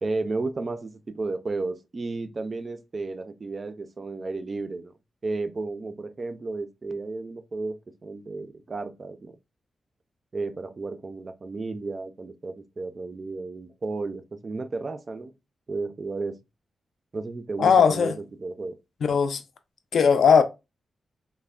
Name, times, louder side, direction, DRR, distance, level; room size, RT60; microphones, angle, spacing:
voice 1, 0.0-4.9 5.2-9.4 10.3-15.3 15.7-16.4 17.1-18.8, right 3 dB, 30° right, 0.3 m, -33 dB
voice 2, 17.6-18.2 19.0-19.4 19.9-20.4, left 6 dB, 65° left, 0.4 m, -18 dB
3.2 x 2.1 x 2.2 m
wide cardioid pair, 155°, 0 cm